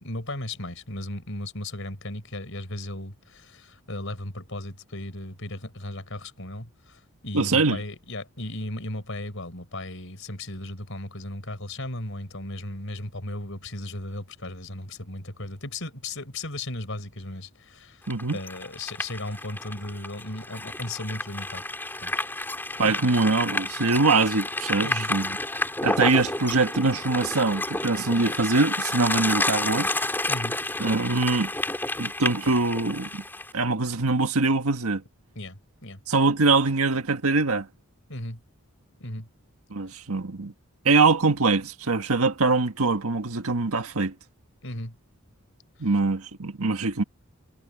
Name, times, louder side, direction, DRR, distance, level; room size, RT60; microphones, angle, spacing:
voice 1, 0.0-18.1 18.3-21.6 22.0-22.1 22.8-23.1 24.8-25.1 30.3-30.6 35.3-36.0 38.1-38.4 39.0-39.3 44.6-45.0, left 1 dB, 60° left, 4.7 m, -36 dB
voice 2, 7.3-7.8 18.1-18.4 22.8-25.3 25.8-29.9 30.8-31.5 32.0-33.2 33.5-35.0 36.1-37.7 39.7-40.5 40.8-44.1 45.8-47.0, right 3 dB, 80° right, 1.6 m, -23 dB
sound 1, 18.1-33.5, left 2 dB, 10° left, 5.8 m, -30 dB
head